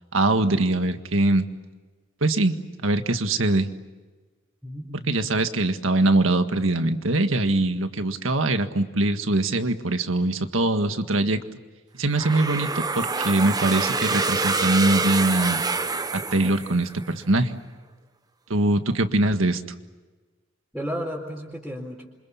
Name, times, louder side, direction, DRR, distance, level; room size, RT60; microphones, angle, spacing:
voice 1, 0.1-1.5 2.2-2.5 2.8-3.7 5.1-11.4 12.0-15.6 16.1-17.5 18.5-19.6, right 2 dB, 75° right, 8 dB, 1.7 m, -22 dB
voice 2, 4.6-5.1 20.7-22.1, equal, ahead, -6 dB, 4.1 m, -33 dB
sound 1, 12.1-17.1, right 3 dB, 20° right, 1.0 m, -26 dB
28.0 x 26.0 x 7.2 m, 1.3 s
head